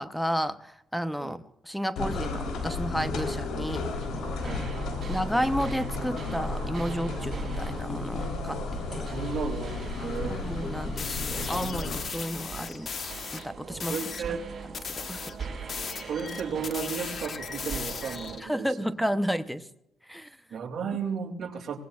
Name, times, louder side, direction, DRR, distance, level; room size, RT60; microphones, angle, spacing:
voice 1, 0.0-3.9 4.4-4.6 5.1-9.1 10.3-12.9 13.3-14.0 14.9-15.3 18.4-19.7 20.1-20.4, equal, ahead, 12 dB, 0.8 m, -32 dB
Walking Carpet, 2.0-12.0, left 3 dB, 85° left, 3.5 m, -33 dB
sound 1, 4.0-18.4, right 5 dB, 40° right, 4.6 m, -41 dB
voice 2, 8.9-10.4 13.9-14.5 16.0-18.9 20.5-21.8, right 6 dB, 60° right, 4 dB, 2.7 m, -34 dB
sound 2, 11.0-13.4 13.8-14.3 14.7-18.4, left 5 dB, 50° left, 1.3 m, -37 dB
24.5 x 19.5 x 2.4 m, 0.84 s
cardioid pair, 90°, 0 cm